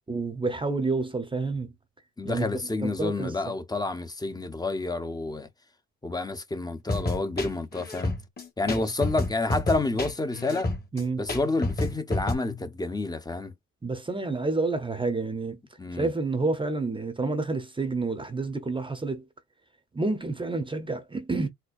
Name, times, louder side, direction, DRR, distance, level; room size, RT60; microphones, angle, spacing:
voice 1, 0.1-1.7 2.2-2.5 2.8-3.4 10.9-11.2 13.8-15.6 15.9-19.2 19.9-21.5, right 3 dB, 15° right, 0.7 m, -29 dB
voice 2, 2.2-5.5 6.0-8.1 8.6-10.7 11.2-13.5 15.8-16.1, left 2 dB, 15° left, 0.7 m, -29 dB
sound 1, 6.9-12.4, left 2 dB, 30° left, 1.3 m, -29 dB
4.3 x 2.1 x 2.5 m
cardioid pair, 90°, 30 cm